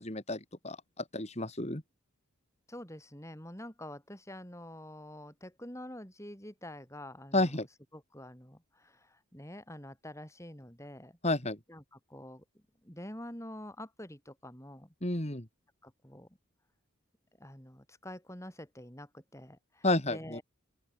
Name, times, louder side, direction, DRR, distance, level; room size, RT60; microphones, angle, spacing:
voice 1, 0.0-1.8 7.3-7.7 11.2-11.6 15.0-15.5 19.8-20.4, left 2 dB, 30° left, 2.7 m, -31 dB
voice 2, 2.7-7.5 7.9-11.2 11.7-11.8 12.1-12.4 12.8-14.9 15.8-16.3 17.4-20.4, left 1 dB, 15° left, 6.8 m, -47 dB
open air
head